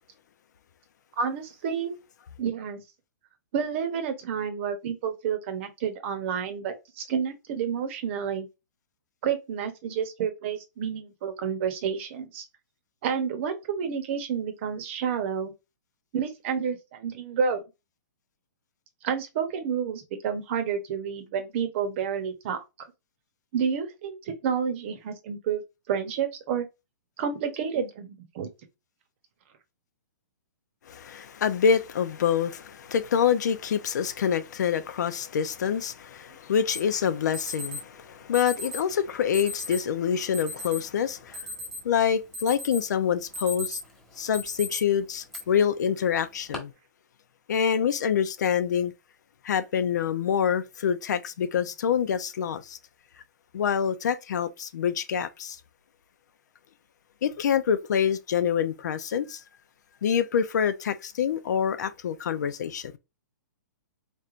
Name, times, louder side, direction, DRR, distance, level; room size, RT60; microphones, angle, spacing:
voice 1, 1.2-1.9 2.4-2.8 3.5-8.5 9.2-12.4 13.0-15.5 16.1-17.6 19.0-22.6 23.5-25.6 25.9-26.7 27.2-28.5, right 7 dB, 40° right, 0.9 m, -30 dB
voice 2, 30.9-41.5 41.8-43.8 44.2-46.7 47.5-48.9 49.4-52.8 53.5-55.6 57.2-59.4 60.0-62.9, left 8 dB, 65° left, 0.6 m, -26 dB
Alarm, 36.7-36.8 37.3-37.8 38.3-38.8 39.3-39.8 40.3-40.8 41.2-42.0 42.3-42.8 43.2-43.9 44.3-44.8 45.3-45.4 46.2-46.6, left 2 dB, 5° left, 1.3 m, -35 dB
4.4 x 3.2 x 2.5 m
hypercardioid pair, 160°, 10 cm